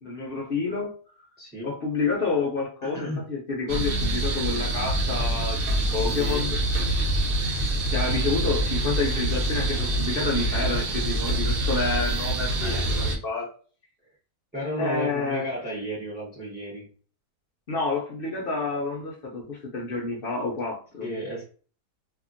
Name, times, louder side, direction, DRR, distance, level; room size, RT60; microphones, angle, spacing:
voice 1, 0.0-0.9 1.6-6.6 7.9-13.5 14.8-15.5 17.7-21.1, left 4 dB, 60° left, -1 dB, 0.6 m, -29 dB
voice 2, 1.4-1.8 2.8-3.3 6.0-6.5 12.6-13.1 14.5-16.9 21.0-21.4, equal, 10° right, -5 dB, 0.7 m, -34 dB
sound 1, 3.7-13.2, right 1 dB, 70° right, 1.1 m, -26 dB
2.8 x 2.5 x 2.5 m, 0.40 s
omnidirectional pair, 1.7 m